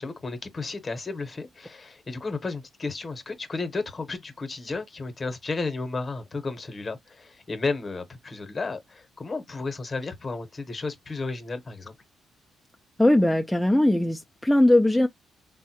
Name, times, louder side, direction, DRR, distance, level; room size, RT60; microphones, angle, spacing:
voice 1, 0.0-11.9, left 3 dB, 30° left, 0.9 m, -33 dB
voice 2, 13.0-15.1, left 1 dB, 5° left, 0.3 m, -20 dB
3.6 x 2.0 x 2.8 m
cardioid pair, 90°, 0 cm